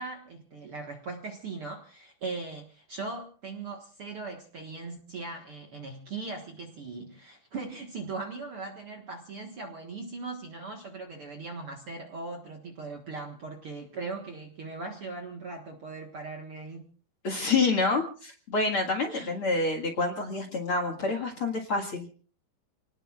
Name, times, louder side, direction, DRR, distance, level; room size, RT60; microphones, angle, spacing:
voice 1, 0.0-16.8 19.1-19.3, right 3 dB, 50° right, 2 dB, 1.9 m, -39 dB
voice 2, 17.2-22.2, left 3 dB, 45° left, 2 dB, 2.3 m, -28 dB
29.5 x 19.0 x 2.4 m, 0.41 s
omnidirectional pair, 4.2 m